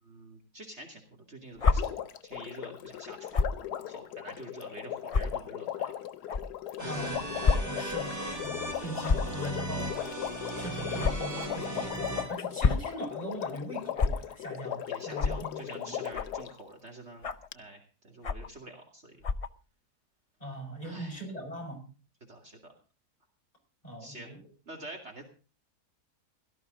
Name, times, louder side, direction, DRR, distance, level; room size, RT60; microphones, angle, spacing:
voice 1, 0.0-2.0 2.2-5.9 6.8-7.2 8.8-9.3 12.5-12.6 14.9-19.2 20.8-21.3 22.2-22.7 24.0-24.3 24.7-25.2, right 1 dB, 45° right, 2 dB, 2.8 m, -47 dB
Water, 1.6-16.6 17.5-17.6, left 11 dB, 85° left, 1.4 m, -38 dB
sound 1, 1.6-1.8 3.3-3.6 4.3-4.4 5.1-5.2 6.3-6.4 7.4-7.6 7.9-8.0 9.0-9.3 11.0-11.1 12.4-12.9 14.0-14.1 15.1-15.4 16.1-16.4 17.2-17.5 18.2-18.5 19.2-19.5, left 5 dB, 50° left, 0.4 m, -26 dB
sound 2, 6.8-12.2, right 1 dB, 10° right, 6.8 m, -37 dB
voice 2, 6.9-7.2 7.6-10.1 10.6-16.0 20.4-21.9 23.8-24.4, equal, 25° left, 1 dB, 5.9 m, -40 dB
17.5 x 13.0 x 3.9 m, 0.36 s
omnidirectional pair, 1.7 m